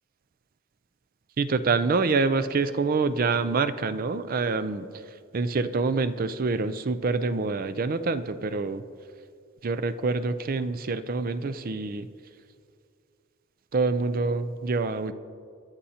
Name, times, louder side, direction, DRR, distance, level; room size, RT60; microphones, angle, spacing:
voice 1, 1.4-4.9 5.3-8.8 9.6-12.1 13.7-15.1, right 4 dB, 45° right, 13 dB, 0.5 m, -26 dB
23.0 x 11.5 x 2.8 m, 2.3 s
head